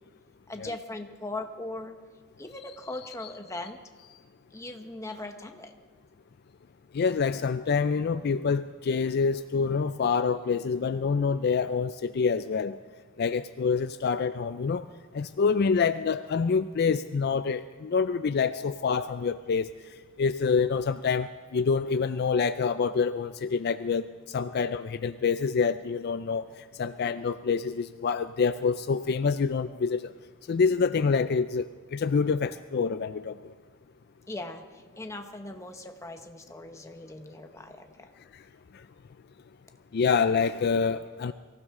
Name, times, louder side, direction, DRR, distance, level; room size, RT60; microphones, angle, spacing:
voice 1, 0.5-1.9 2.4-3.8 4.5-5.7 34.3-38.1, left 2 dB, 15° left, 5 dB, 1.1 m, -39 dB
voice 2, 6.9-12.8 13.2-14.9 15.1-19.7 20.2-26.5 26.8-30.1 30.5-33.5 39.9-41.3, left 5 dB, 50° left, 11 dB, 0.4 m, -26 dB
24.0 x 15.5 x 3.7 m, 1.5 s
head